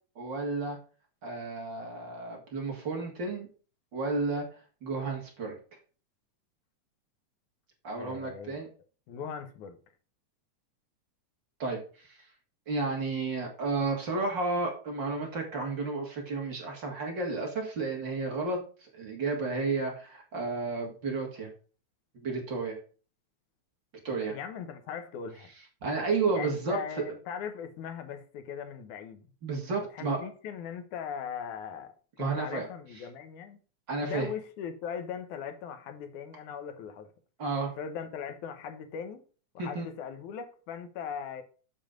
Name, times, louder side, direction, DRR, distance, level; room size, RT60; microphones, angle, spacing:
voice 1, 0.2-0.8 1.2-3.5 3.9-4.5 4.8-5.5 7.8-8.7 11.6-12.3 12.7-21.5 22.1-22.8 24.0-24.4 25.8-27.0 29.4-30.2 32.2-32.7 33.9-34.3 37.4-37.7 39.6-39.9, right 3 dB, 40° right, 2.4 m, -32 dB
voice 2, 8.0-8.6 9.1-9.8 24.1-25.5 26.3-29.3 29.9-31.9 32.2-33.6 34.0-37.1 37.8-39.2 39.5-41.4, left 7 dB, 85° left, 2.5 m, -39 dB
7.3 x 7.0 x 3.8 m
omnidirectional pair, 3.4 m